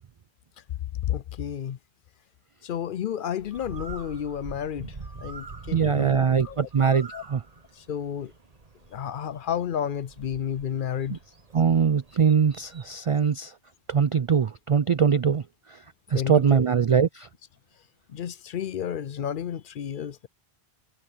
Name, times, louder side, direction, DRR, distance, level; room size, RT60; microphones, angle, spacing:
voice 1, 1.1-1.8 2.6-6.7 7.1-7.2 7.9-8.3 8.9-11.2 16.1-16.6 18.1-20.3, left 9 dB, 60° left, 0.7 m, -31 dB
Bird, 3.4-13.0, right 4 dB, 40° right, 1.4 m, -45 dB
voice 2, 5.7-7.4 11.1-11.2 11.5-13.5 13.9-15.4 15.7-15.8 16.1-17.3, right 6 dB, 60° right, 0.3 m, -22 dB
omnidirectional pair, 1.1 m